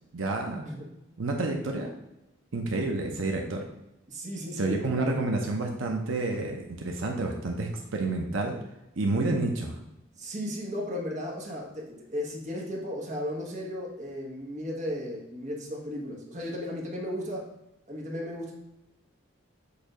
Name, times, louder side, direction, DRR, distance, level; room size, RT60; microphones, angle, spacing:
voice 1, 0.1-0.6 1.2-1.9 2.5-3.6 4.6-8.6 9.0-9.8, right 2 dB, 85° right, 1 dB, 0.8 m, -29 dB
voice 2, 0.6-1.1 4.1-5.0 10.1-17.5 17.9-18.5, left 1 dB, 40° right, -2 dB, 1.3 m, -35 dB
6.7 x 2.7 x 5.0 m, 0.89 s
head